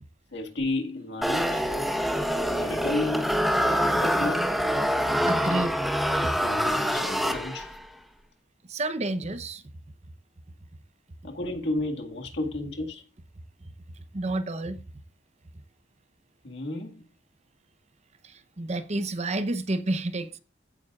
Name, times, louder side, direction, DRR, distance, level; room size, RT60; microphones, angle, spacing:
voice 1, 0.3-1.7 2.5-3.4 3.7-4.5 6.4-7.8 11.2-13.0 16.4-17.0, left 2 dB, 65° left, 1.9 m, -32 dB
sound 1, 1.2-7.8, equal, ahead, 1.1 m, -25 dB
voice 2, 5.2-5.8 6.2-6.4 8.6-9.6 13.6-14.8 18.2-20.4, right 2 dB, 35° right, 0.7 m, -30 dB
15.5 x 9.3 x 2.4 m
head